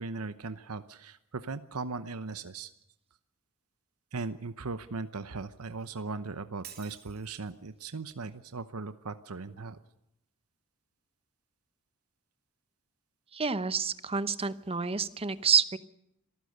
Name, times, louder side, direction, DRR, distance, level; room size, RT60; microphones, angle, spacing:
voice 1, 0.0-2.7 4.1-9.8, right 3 dB, 90° right, 12 dB, 0.9 m, -38 dB
Shatter, 6.6-7.6, right 10 dB, 45° right, 3.3 m, -50 dB
voice 2, 13.3-15.8, right 6 dB, 25° right, 15 dB, 0.8 m, -28 dB
26.5 x 14.5 x 6.7 m, 0.82 s
head